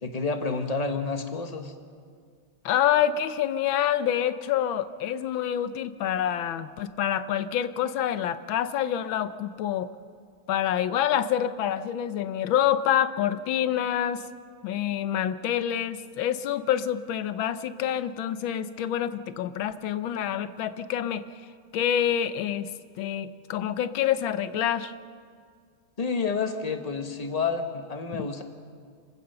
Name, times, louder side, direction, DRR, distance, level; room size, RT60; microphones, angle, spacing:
voice 1, 0.0-1.7 26.0-28.4, left 4 dB, 25° left, 7 dB, 0.9 m, -29 dB
voice 2, 2.6-9.9 10.5-14.2 14.6-21.2 21.7-22.7 23.0-24.9, left 10 dB, 75° left, 13 dB, 1.5 m, -27 dB
26.5 x 15.5 x 6.8 m, 2.1 s
omnidirectional pair, 2.3 m